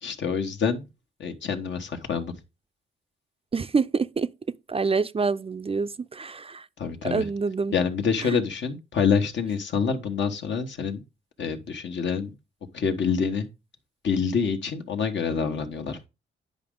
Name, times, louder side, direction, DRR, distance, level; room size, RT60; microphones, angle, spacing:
voice 1, 0.0-0.9 1.2-2.3 6.8-7.3 7.7-11.0 11.4-12.3 12.7-13.5 14.0-16.1, left 6 dB, 65° left, 1.3 m, -26 dB
voice 2, 3.5-4.3 4.7-6.7 7.1-7.7 8.2-8.4, right 4 dB, 30° right, 0.5 m, -26 dB
9.5 x 5.1 x 3.7 m
cardioid pair, 65°, 20 cm